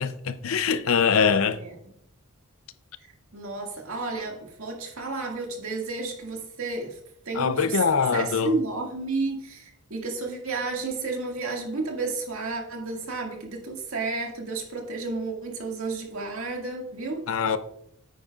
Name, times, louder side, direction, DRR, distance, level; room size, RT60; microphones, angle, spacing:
voice 1, 0.0-1.6 7.3-8.5 17.3-17.6, left 6 dB, 70° left, 0.6 m, -23 dB
voice 2, 3.3-7.0 7.3-7.8 8.1-17.3, right 3 dB, 75° right, 2.0 m, -31 dB
9.4 x 9.2 x 2.4 m
head